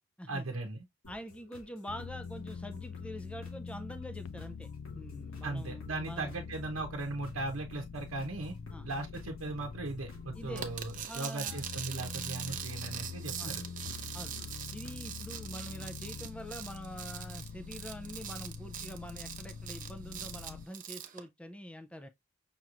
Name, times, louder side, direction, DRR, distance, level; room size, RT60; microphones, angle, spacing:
voice 1, 0.3-0.8 5.4-8.5 8.8-13.6, right 2 dB, 85° right, 0.8 m, -38 dB
sound 1, 1.0-16.2, left 2 dB, 85° left, 2.3 m, -56 dB
voice 2, 1.1-6.3 8.7-8.9 10.3-10.6 11.1-11.6 13.4-13.6 14.1-14.4 14.7-22.1, equal, 5° left, 0.4 m, -45 dB
sound 2, 1.9-11.1 11.5-20.7, left 5 dB, 70° left, 0.4 m, -44 dB
sound 3, 10.6-21.2, right 9 dB, 40° right, 0.6 m, -42 dB
5.7 x 3.0 x 2.5 m
head